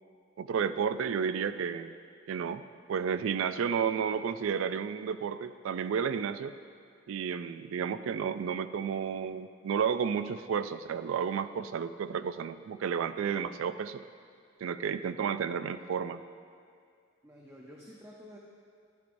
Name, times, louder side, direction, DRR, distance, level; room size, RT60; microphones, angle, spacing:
voice 1, 0.4-1.9 2.3-2.6 2.9-6.5 7.1-14.0 14.6-16.2, right 7 dB, 90° right, 12 dB, 0.3 m, -32 dB
voice 2, 17.2-18.4, equal, 15° right, -2 dB, 0.6 m, -50 dB
11.5 x 10.5 x 2.6 m, 2.3 s
head